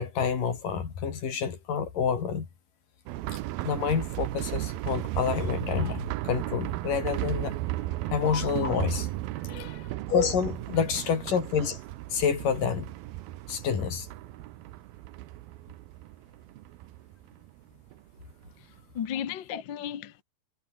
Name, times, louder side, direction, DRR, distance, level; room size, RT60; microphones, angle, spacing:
voice 1, 0.0-2.5 3.6-7.6 8.1-9.1 10.1-11.8 12.1-12.9 13.5-14.1 19.5-19.6, left 7 dB, 55° left, 4.9 m, -28 dB
sound 1, 3.1-18.5 18.8-18.9 19.3-19.4, right 16 dB, 75° right, 2.6 m, -35 dB
voice 2, 9.5-9.9 18.9-20.2, left 9 dB, 80° left, 1.0 m, -35 dB
omnidirectional pair, 4.6 m